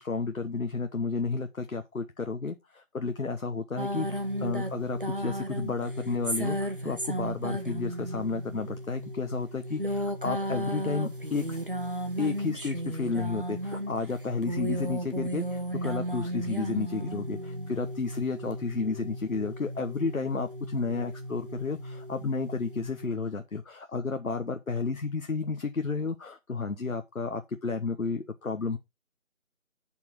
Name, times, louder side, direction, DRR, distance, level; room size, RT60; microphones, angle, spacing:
voice 1, 0.0-11.6 12.2-28.8, left 4 dB, 80° left, 1.1 m, -32 dB
sound 1, 3.8-23.1, equal, 40° right, 1.2 m, -34 dB
7.4 x 6.0 x 4.4 m
figure-of-eight pair, 180°, 41 cm